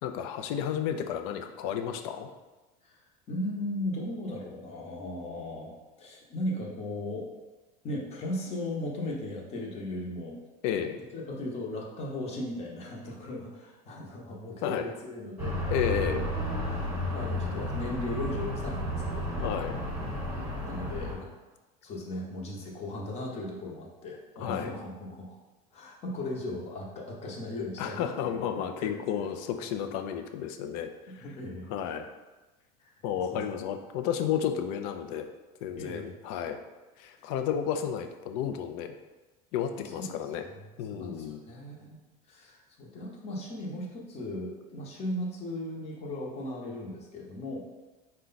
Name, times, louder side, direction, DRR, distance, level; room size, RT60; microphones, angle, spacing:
voice 1, 0.0-2.3 10.6-11.0 14.6-14.9 15.7-16.3 19.4-19.8 24.4-24.7 27.6-31.2 31.7-32.0 33.0-35.3 35.6-36.6 37.0-38.9 39.5-40.4 40.8-41.4, left 9 dB, 70° left, 6 dB, 0.5 m, -32 dB
voice 2, 2.8-5.7 6.0-7.3 7.8-10.4 11.1-15.6 17.1-19.5 20.6-21.3 21.8-25.4 25.7-28.4 28.8-29.2 31.1-31.7 32.8-32.9 33.3-33.4 35.8-36.2 37.2-37.3 40.0-42.0 42.3-47.6, left 1 dB, 35° left, -2 dB, 0.9 m, -37 dB
sound 1, 15.4-21.1, equal, 15° right, 1.2 m, -32 dB
4.6 x 2.2 x 3.9 m, 1.2 s
supercardioid pair, 135°, 19 cm